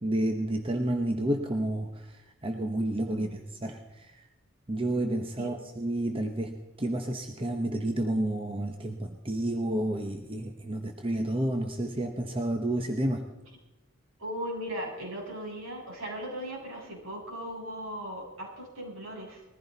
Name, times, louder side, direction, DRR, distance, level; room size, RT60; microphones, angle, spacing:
voice 1, 0.0-4.2 4.7-13.2, right 1 dB, 25° right, 4 dB, 1.0 m, -30 dB
voice 2, 14.2-19.4, equal, 70° right, -3 dB, 7.6 m, -38 dB
21.0 x 15.0 x 4.1 m, 1.1 s
head